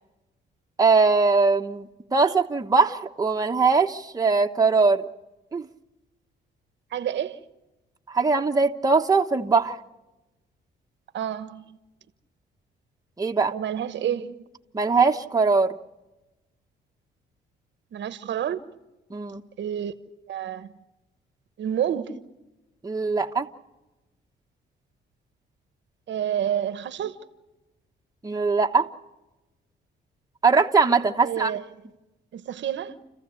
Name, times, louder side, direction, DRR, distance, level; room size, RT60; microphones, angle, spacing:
voice 1, 0.8-5.1 5.5-5.7 8.1-9.8 13.2-13.5 14.7-15.8 19.1-19.4 22.8-23.5 28.2-28.9 30.4-31.5, right 4 dB, 20° right, 1.1 m, -21 dB
voice 2, 6.9-7.4 11.1-11.8 13.5-14.4 17.9-18.6 19.6-19.9 20.3-20.7 21.6-22.2 26.1-27.2 31.2-31.7 32.3-33.0, right 10 dB, 65° right, 1.1 m, -29 dB
29.5 x 15.0 x 8.3 m
cardioid pair, 90°, 20 cm